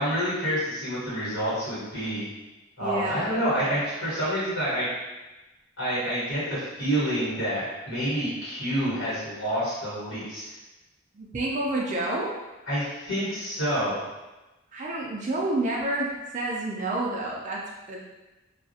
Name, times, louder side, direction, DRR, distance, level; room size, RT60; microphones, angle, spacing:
voice 1, 0.0-2.2 2.8-4.9 5.8-10.4 12.7-14.0, equal, 75° left, -10 dB, 1.3 m, -28 dB
voice 2, 2.8-3.2 3.6-3.7 11.1-12.3 14.7-18.0, right 2 dB, 40° right, -3 dB, 0.3 m, -29 dB
2.3 x 2.0 x 2.7 m, 1.1 s
head